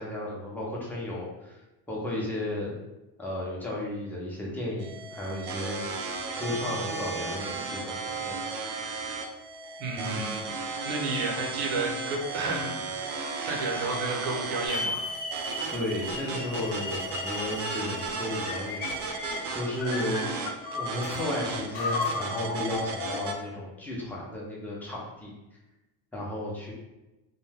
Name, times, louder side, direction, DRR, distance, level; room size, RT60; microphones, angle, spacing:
voice 1, 0.0-1.6 1.9-2.8 3.2-8.4 9.9-10.2 15.7-18.8 19.5-20.4 20.7-25.3 26.1-26.7, left 1 dB, 5° left, -4 dB, 0.5 m, -34 dB
sound 1, 4.8-23.3, right 4 dB, 55° right, 0.5 m, -35 dB
voice 2, 9.8-10.6 10.8-12.8 13.1-15.1, right 3 dB, 80° right, -1 dB, 0.8 m, -31 dB
Hiss / Alarm, 14.7-19.5, left 2 dB, 45° left, 0.8 m, -37 dB
sound 2, 18.4-21.3 21.7-23.5, left 4 dB, 80° left, 0.6 m, -34 dB
2.2 x 2.2 x 3.2 m, 1.0 s
cardioid pair, 125°, 49 cm